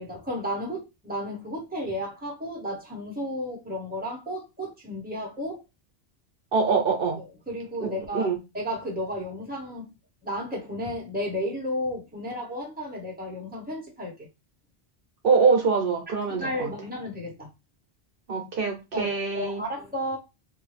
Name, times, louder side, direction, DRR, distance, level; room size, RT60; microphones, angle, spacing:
voice 1, 0.0-5.6 7.2-9.9 10.2-14.1 16.4-17.5 18.9-20.2, equal, 10° right, 0.9 m, -33 dB
voice 2, 6.5-7.2 7.8-8.4 15.2-16.7 18.3-19.6, right 5 dB, 65° right, 0.9 m, -24 dB
2.6 x 2.2 x 3.2 m
omnidirectional pair, 1.1 m